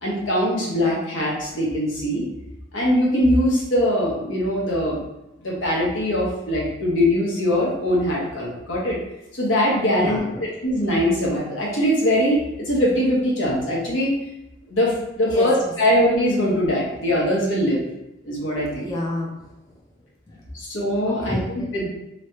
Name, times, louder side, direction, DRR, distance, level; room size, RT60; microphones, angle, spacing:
voice 1, 0.0-2.2 2.7-5.0 5.4-9.0 9.3-10.2 10.6-14.1 14.7-17.8 18.2-18.9 20.5-21.4 21.7-21.9, equal, 80° left, -4 dB, 1.2 m, -21 dB
voice 2, 9.9-10.3 15.2-15.7 18.6-19.8 20.3-20.6 21.0-21.9, left 1 dB, 20° left, -3 dB, 0.4 m, -31 dB
3.3 x 3.2 x 2.8 m, 0.92 s
head